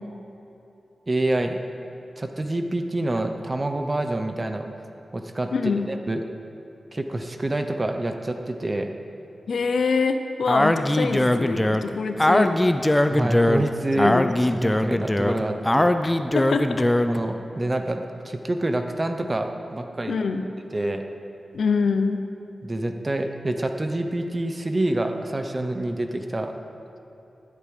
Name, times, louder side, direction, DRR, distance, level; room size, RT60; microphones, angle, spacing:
voice 1, 1.1-1.6 2.2-4.7 5.1-5.5 5.8-6.2 6.9-8.9 13.1-14.2 14.5-15.9 17.1-20.2 20.7-21.0 22.6-26.5, right 1 dB, 25° right, 6 dB, 0.8 m, -27 dB
voice 2, 5.5-5.9 9.5-12.5 13.9-14.3 16.0-16.9 20.1-20.4 21.5-22.2, left 4 dB, 70° left, 8 dB, 0.7 m, -25 dB
Speech, 10.5-17.2, left 1 dB, 10° left, 0.4 m, -21 dB
10.5 x 8.2 x 9.4 m, 3.0 s
wide cardioid pair, 150°, 0 cm